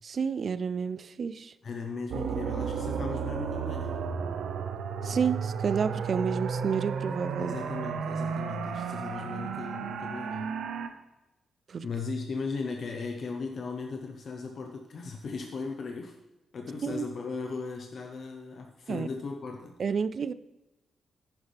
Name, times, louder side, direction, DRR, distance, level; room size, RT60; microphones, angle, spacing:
voice 1, 0.0-1.5 5.0-7.6 11.7-11.9 16.8-17.1 18.9-19.1 19.8-20.3, right 6 dB, 45° right, 15 dB, 0.4 m, -30 dB
voice 2, 1.6-4.0 7.3-10.5 11.8-16.1 16.5-19.7, left 4 dB, 45° left, 3 dB, 0.9 m, -37 dB
sound 1, 2.1-10.9, right 6 dB, 85° right, 0.8 m, -33 dB
10.5 x 10.0 x 3.4 m, 0.99 s
wide cardioid pair, 155°, 0 cm